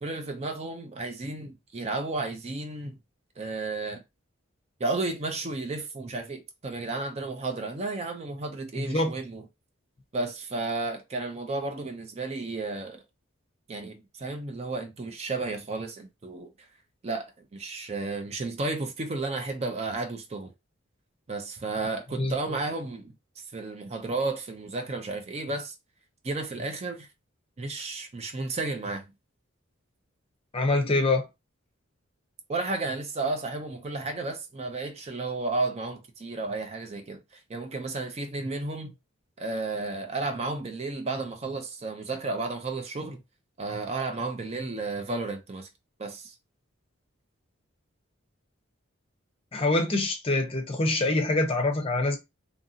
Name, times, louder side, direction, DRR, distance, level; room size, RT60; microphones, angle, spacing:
voice 1, 0.0-2.9 3.4-4.0 4.8-9.4 10.1-13.0 13.7-16.5 17.0-20.5 21.3-23.1 23.5-25.7 26.2-27.1 27.6-29.0 32.5-38.9 39.4-43.2 43.6-45.7 46.0-46.3, right 3 dB, 30° right, 0.4 m, -33 dB
voice 2, 8.8-9.1 22.2-22.3 30.5-31.3 49.5-52.2, left 2 dB, 30° left, 0.6 m, -25 dB
2.8 x 2.5 x 2.6 m
head